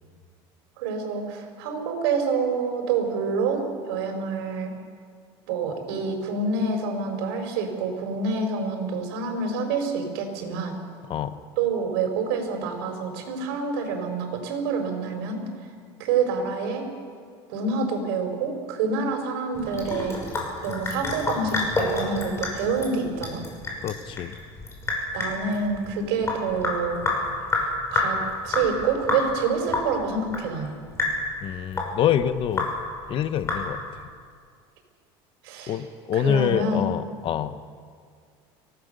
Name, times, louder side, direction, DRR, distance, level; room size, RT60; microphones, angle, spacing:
voice 1, 0.8-4.7 5.5-10.8 11.6-15.4 16.0-16.9 17.5-20.2 20.6-23.4 25.1-27.0 27.9-28.2 28.4-30.7 35.4-35.8 36.1-36.9, right 4 dB, 85° right, 4 dB, 4.8 m, -27 dB
Sink (filling or washing) / Drip, 19.5-34.0, left 2 dB, 20° left, 5.9 m, -29 dB
voice 2, 23.8-24.4 31.4-32.7 33.1-33.8 35.7-37.6, left 9 dB, 45° left, 12 dB, 1.0 m, -26 dB
24.0 x 17.5 x 6.8 m, 2.1 s
cardioid pair, 130°, 12 cm